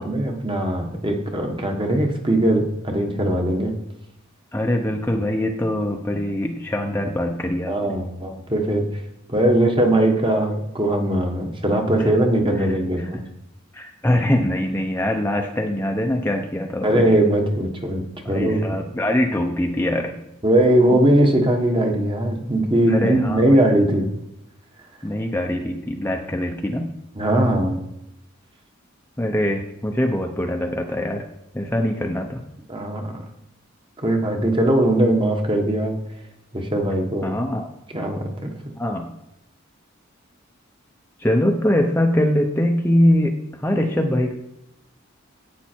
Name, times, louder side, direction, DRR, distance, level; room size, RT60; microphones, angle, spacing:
voice 1, 0.0-3.7 5.1-5.2 7.7-8.9 9.3-13.2 16.8-18.8 20.4-24.1 27.1-27.8 32.7-33.2 34.0-36.0 36.5-37.3 37.9-38.5, right 1 dB, 25° right, 3 dB, 1.4 m, -20 dB
voice 2, 4.5-7.8 12.6-12.7 13.0-13.1 13.7-17.0 18.3-20.1 20.9-21.0 22.9-23.6 25.0-26.9 29.2-31.3 31.5-32.4 37.2-37.7 38.8-39.1 41.2-43.3 43.6-44.3, left 1 dB, 10° left, 2 dB, 0.8 m, -22 dB
11.5 x 8.6 x 4.6 m, 0.87 s
head